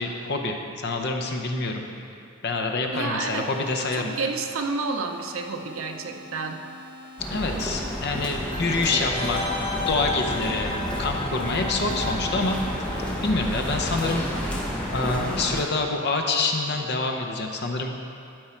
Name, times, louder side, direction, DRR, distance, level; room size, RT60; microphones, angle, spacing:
voice 1, 0.0-1.8 2.4-4.1 7.3-9.4 9.9-14.5 14.9-18.1, left 3 dB, 55° left, 3 dB, 0.7 m, -27 dB
voice 2, 2.9-3.5 3.9-6.6, right 4 dB, 70° right, 4 dB, 0.7 m, -30 dB
sound 1, 3.3-14.7, left 2 dB, 20° right, 1.1 m, -45 dB
sound 2, 7.2-15.6, equal, 5° left, 1.0 m, -30 dB
sound 3, 8.5-14.0 14.2-14.3, left 3 dB, 30° left, 1.7 m, -34 dB
12.5 x 4.7 x 4.4 m, 2.5 s
head